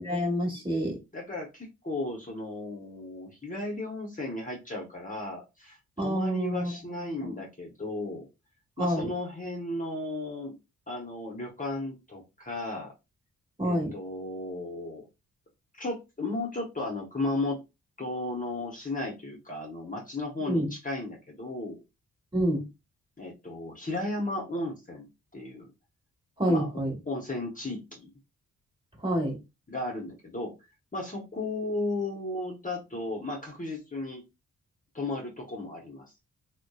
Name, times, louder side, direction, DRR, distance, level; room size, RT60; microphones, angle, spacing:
voice 1, 0.0-1.0 6.0-7.3 8.8-9.1 13.6-13.9 20.5-20.7 22.3-22.6 26.4-26.9 29.0-29.4, equal, 15° right, 0 dB, 1.4 m, -28 dB
voice 2, 1.1-8.3 8.8-10.5 10.9-12.9 13.6-15.0 15.8-17.6 18.0-21.8 23.2-25.1 25.3-25.7 26.5-26.7 27.1-28.1 29.7-30.5 30.9-34.2 34.9-36.0, left 2 dB, 25° left, -1 dB, 0.9 m, -35 dB
2.5 x 2.2 x 2.3 m, 0.24 s
supercardioid pair, 40°, 34 cm